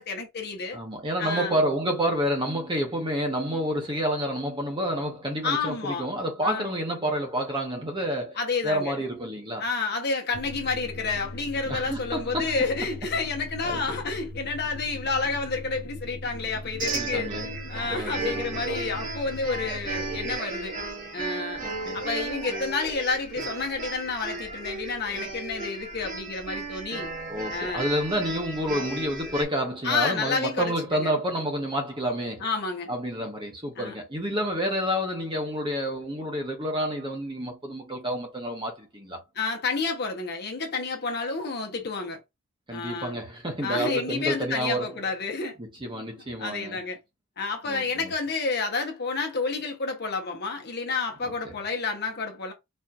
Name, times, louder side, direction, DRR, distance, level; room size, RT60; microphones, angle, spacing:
voice 1, 0.0-0.8 1.2-1.6 5.4-6.1 6.4-6.7 8.4-9.0 9.6-20.7 21.1-21.6 21.9-27.1 27.5-27.9 29.8-31.1 32.4-32.9 33.7-34.0 39.3-42.2 42.7-43.2 43.6-45.5 46.4-47.0 47.4-52.5, left 4 dB, 50° left, 1.0 m, -30 dB
voice 2, 0.7-8.4 8.6-9.6 11.7-12.6 13.6-13.8 16.8-17.5 17.9-18.4 21.6-22.0 27.3-32.4 32.9-39.2 42.7-44.9 45.6-46.8 47.7-48.1, equal, 20° right, 1.2 m, -29 dB
sound 1, 10.3-20.3, left 1 dB, 85° left, 1.0 m, -40 dB
sound 2, 16.8-29.4, right 3 dB, 35° right, 1.3 m, -34 dB
4.3 x 3.1 x 2.5 m
head